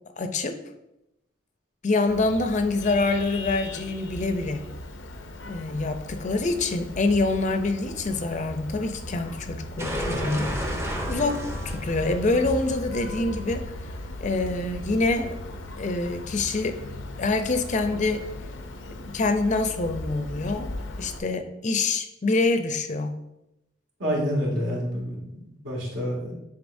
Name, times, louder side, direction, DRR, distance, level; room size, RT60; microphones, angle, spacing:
voice 1, 0.2-0.6 1.8-4.7 5.5-10.5 11.1-11.4 11.7-13.6 14.2-15.4 15.8-16.8 17.2-18.3 18.9-20.7 21.0-23.2, left 3 dB, 40° left, 8 dB, 0.5 m, -26 dB
Vehicle horn car horn honking, 2.1-21.2, left 1 dB, 85° left, 0.6 m, -37 dB
sound 1, 9.8-14.6, equal, 15° right, 0.6 m, -33 dB
voice 2, 24.0-26.3, equal, 80° right, -4 dB, 2.3 m, -28 dB
9.5 x 4.1 x 2.6 m, 0.87 s
head